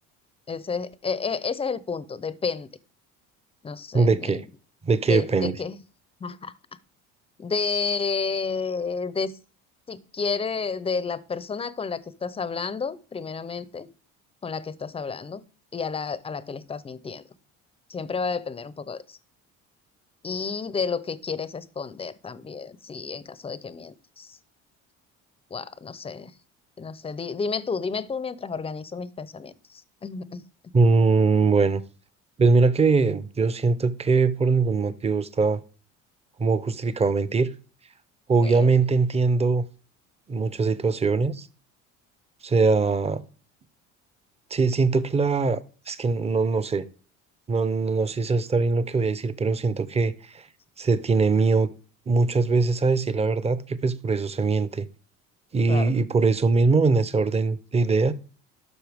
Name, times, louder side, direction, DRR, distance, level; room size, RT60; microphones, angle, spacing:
voice 1, 0.5-2.7 3.6-4.4 5.1-5.7 6.2-6.5 7.4-9.3 9.9-13.9 14.4-15.4 15.7-17.2 17.9-19.2 20.2-24.4 25.5-26.3 26.8-30.4 38.4-38.7 55.7-55.9, left 5 dB, 20° left, 0.6 m, -31 dB
voice 2, 3.9-4.4 4.8-5.5 30.7-31.8 32.4-35.6 36.4-37.5 38.3-39.6 40.3-41.5 42.4-43.2 44.5-45.6 45.9-46.8 47.5-50.5 50.8-51.7 52.1-54.9 55.5-58.1, right 4 dB, 20° right, 0.7 m, -22 dB
12.5 x 5.7 x 3.5 m
cardioid pair, 115°, 31 cm